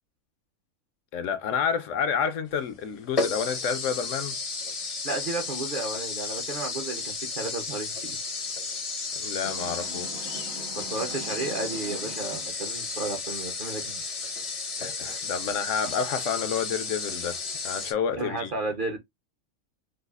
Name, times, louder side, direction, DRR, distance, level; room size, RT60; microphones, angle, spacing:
voice 1, 1.1-4.4 9.2-10.6 14.8-17.4 17.6-18.5, left 7 dB, 70° left, 0.9 m, -29 dB
sound 1, 2.5-2.6 3.2-17.9, left 4 dB, 35° left, 0.6 m, -33 dB
voice 2, 5.0-8.2 10.7-14.0 18.2-19.0, right 2 dB, 45° right, 0.8 m, -33 dB
sound 2, 9.4-12.6, right 2 dB, 90° right, 2.3 m, -43 dB
4.7 x 2.4 x 2.3 m
omnidirectional pair, 1.4 m